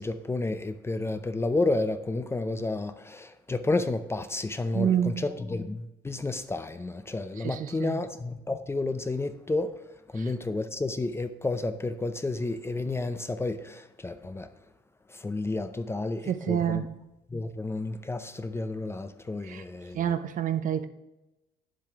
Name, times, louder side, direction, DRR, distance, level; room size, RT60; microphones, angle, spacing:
voice 1, 0.0-9.7 10.1-14.5 15.1-16.8 17.3-20.2, left 2 dB, 15° left, 10 dB, 0.5 m, -31 dB
voice 2, 4.7-5.2 7.4-7.9 16.3-16.9 19.5-19.6 20.0-20.9, right 9 dB, 50° right, 11 dB, 0.6 m, -27 dB
9.5 x 7.5 x 3.6 m, 0.97 s
cardioid pair, 110°, 17 cm